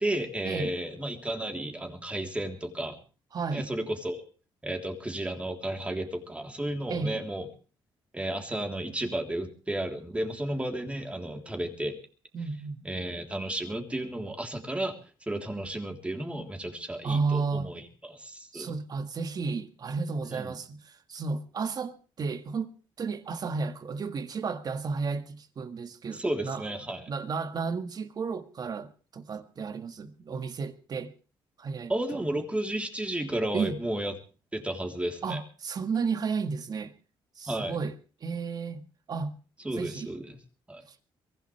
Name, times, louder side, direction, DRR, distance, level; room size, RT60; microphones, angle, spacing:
voice 1, 0.0-3.0 3.5-4.2 4.6-7.5 8.1-12.0 12.8-15.0 15.2-18.7 20.3-20.6 26.1-27.1 31.9-34.1 34.5-35.4 37.5-37.8 39.6-40.4 40.7-40.8, right 1 dB, 15° right, 3.5 m, -33 dB
voice 2, 3.3-3.7 6.9-7.2 12.3-12.8 17.0-17.7 18.5-26.6 27.1-31.1 31.6-32.2 33.5-33.8 35.2-36.9 37.4-38.8 39.1-39.4 39.8-40.1 40.9-41.0, right 4 dB, 45° right, 1.7 m, -33 dB
23.5 x 16.0 x 3.4 m
cardioid pair, 105°, 9 cm